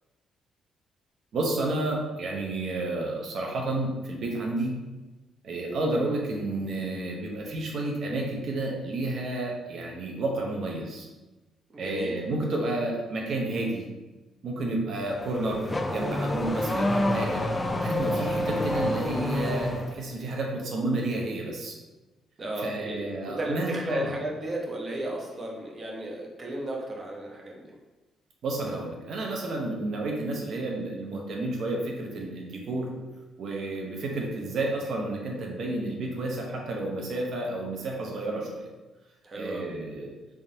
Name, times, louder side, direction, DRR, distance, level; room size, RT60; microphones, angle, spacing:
voice 1, 1.3-4.7 5.4-11.1 11.8-13.8 14.4-17.4 17.8-21.8 22.6-24.1 28.4-32.9 33.4-38.7 39.3-40.1, right 2 dB, 65° right, 0 dB, 0.7 m, -31 dB
voice 2, 11.7-12.1 22.4-27.8 29.7-29.8 39.2-39.7, right 1 dB, 35° right, -1 dB, 0.9 m, -34 dB
Car / Accelerating revving vroom, 15.0-20.0, left 1 dB, 20° left, 0.4 m, -28 dB
3.5 x 3.4 x 2.7 m, 1.1 s
cardioid pair, 90°, 0 cm